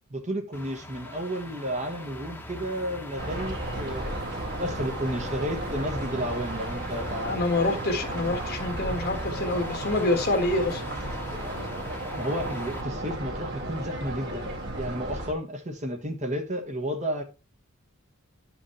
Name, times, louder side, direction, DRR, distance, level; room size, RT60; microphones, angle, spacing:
voice 1, 0.1-4.0 4.6-7.3 12.2-14.5 14.8-17.2, equal, 35° right, 1.3 m, -32 dB
sound 1, 0.5-12.8, left 1 dB, 10° left, 1.3 m, -41 dB
sound 2, 3.2-15.3, right 1 dB, 50° right, 2.2 m, -34 dB
voice 2, 7.2-10.9, left 2 dB, 50° left, 1.6 m, -26 dB
11.5 x 5.2 x 3.2 m
head